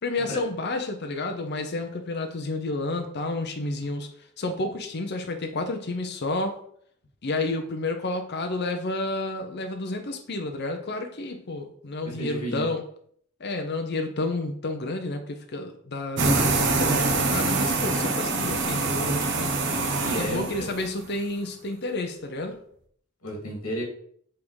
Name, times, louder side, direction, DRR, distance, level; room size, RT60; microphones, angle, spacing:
voice 1, 0.0-4.1 4.4-6.6 7.2-12.8 13.4-19.6 20.1-22.6, left 2 dB, 50° left, 0.7 m, -30 dB
voice 2, 12.0-12.7 20.0-20.7 23.2-23.8, equal, 80° left, 2.1 m, -32 dB
sound 1, 16.2-21.0, right 3 dB, 55° right, 1.0 m, -25 dB
7.4 x 3.6 x 4.8 m
head